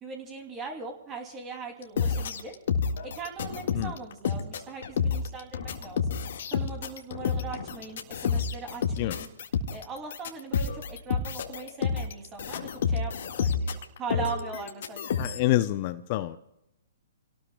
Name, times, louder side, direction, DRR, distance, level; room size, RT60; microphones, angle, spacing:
voice 1, 0.0-2.6 3.0-6.2 6.5-9.3 9.7-15.3, right 4 dB, 25° right, 3 dB, 2.8 m, -40 dB
sound 1, 1.8-15.4, left 6 dB, 60° left, 1.9 m, -29 dB
voice 2, 15.2-16.4, left 15 dB, 40° left, 11 dB, 0.6 m, -27 dB
28.5 x 18.5 x 2.3 m, 0.88 s
hypercardioid pair, 125°, 0 cm